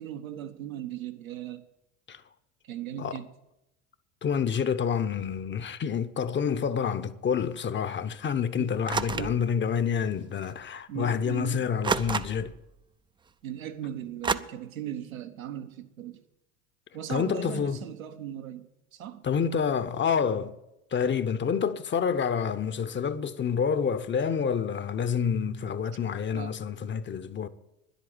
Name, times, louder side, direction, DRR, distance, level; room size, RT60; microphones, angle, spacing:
voice 1, 0.0-1.7 2.6-3.3 8.5-8.8 9.1-9.4 10.9-11.7 13.4-16.2 16.9-19.2 26.3-26.5, right 10 dB, 85° right, 1.1 m, -38 dB
voice 2, 4.2-12.5 17.1-17.8 19.2-20.5 20.9-27.5, left 7 dB, 30° left, 0.8 m, -28 dB
sound 1, 8.9-9.4 10.4-10.5 11.8-12.6 14.2-14.3, right 5 dB, 10° right, 0.4 m, -29 dB
10.5 x 8.2 x 8.6 m
hypercardioid pair, 70°, 40 cm